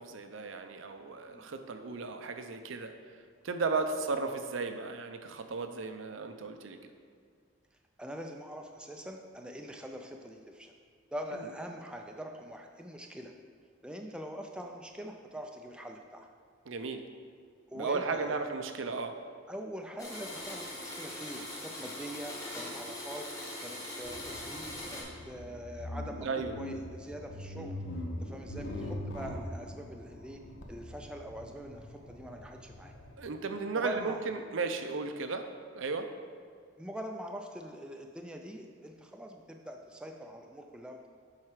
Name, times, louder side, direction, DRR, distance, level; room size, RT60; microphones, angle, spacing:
voice 1, 0.0-2.9 3.4-6.9 11.3-11.5 16.7-17.0 17.7-19.2 26.2-26.6 33.2-35.5 35.7-36.1, right 4 dB, 75° right, 7 dB, 0.6 m, -35 dB
voice 2, 8.0-10.7 11.1-13.3 13.8-16.3 17.7-18.4 19.5-23.3 23.6-27.8 28.2-30.4 30.7-32.9 33.8-34.2 36.8-41.1, equal, 5° right, 2 dB, 0.4 m, -43 dB
Domestic sounds home sounds, 20.0-25.0, left 1 dB, 15° left, 1.3 m, -41 dB
sound 1, 24.0-33.2, left 1 dB, 60° left, 0.9 m, -42 dB
7.4 x 4.8 x 4.8 m, 2.1 s
head